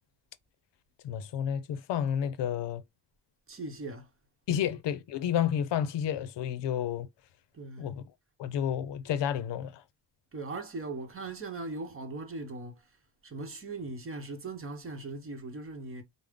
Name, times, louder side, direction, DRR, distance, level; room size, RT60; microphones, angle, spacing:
voice 1, 1.0-2.8 4.5-7.1 7.8-8.0 8.4-9.8, left 9 dB, 70° left, 0.6 m, -30 dB
voice 2, 3.5-4.1 4.6-4.7 7.5-7.9 10.3-12.9 13.2-16.0, right 3 dB, 30° right, 0.9 m, -39 dB
5.0 x 2.1 x 3.5 m
wide cardioid pair, 150°, 43 cm